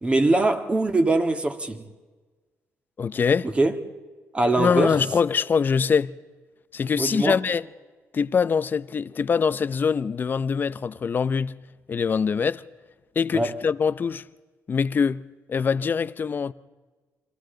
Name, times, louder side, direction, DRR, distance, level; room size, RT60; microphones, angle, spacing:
voice 1, 0.0-1.8 3.4-3.8 4.3-5.0 7.0-7.4 13.3-13.6, right 2 dB, 20° right, 1.8 m, -22 dB
voice 2, 3.0-3.5 4.6-6.1 6.7-7.6 8.1-11.5 11.9-12.6 13.2-14.2 14.7-15.2 15.5-16.5, left 6 dB, 35° left, 0.7 m, -23 dB
29.5 x 24.0 x 3.9 m
cardioid pair, 110°, 5 cm